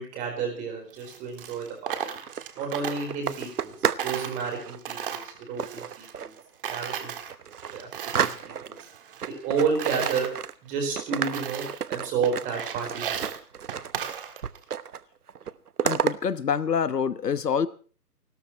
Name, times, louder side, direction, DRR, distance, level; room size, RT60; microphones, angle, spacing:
voice 1, 0.0-2.1 2.6-3.7 4.0-6.3 6.7-7.1 7.6-7.9 8.1-8.3 8.6-8.8 9.3-10.3 10.6-13.3, right 5 dB, 15° right, 2 dB, 4.5 m, -31 dB
Coin (dropping), 0.9-3.7 4.0-6.4 6.6-8.4 8.8-10.3 10.8-10.9 11.2-11.9 12.2-14.6, right 8 dB, 35° right, 1.7 m, -36 dB
sound 1, 2.2-4.1 4.4-4.8 5.6-6.4 6.9-7.0 7.3-8.8 9.2-10.7 11.0-14.1 14.4-15.0 15.3-16.2, right 8 dB, 65° right, 1.1 m, -31 dB
voice 2, 15.8-17.7, left 7 dB, 75° left, 15 dB, 1.2 m, -26 dB
29.5 x 13.5 x 3.1 m, 0.39 s
hypercardioid pair, 155°, 49 cm